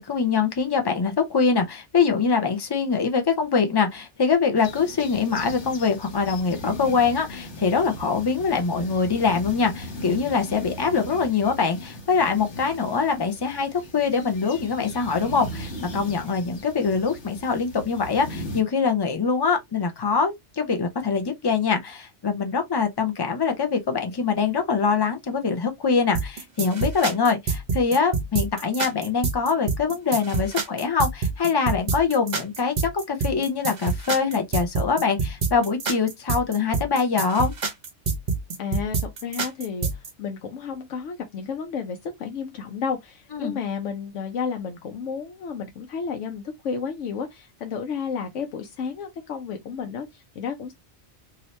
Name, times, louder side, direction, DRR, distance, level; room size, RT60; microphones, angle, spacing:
voice 1, 0.0-37.5 43.3-43.6, left 5 dB, 30° left, 0.5 m, -23 dB
sound 1, 4.6-18.6, left 1 dB, 70° left, 1.5 m, -38 dB
sound 2, 26.1-40.1, right 4 dB, 40° right, 0.8 m, -27 dB
voice 2, 38.6-50.7, left 6 dB, 90° left, 1.0 m, -32 dB
2.8 x 2.7 x 3.1 m
omnidirectional pair, 1.2 m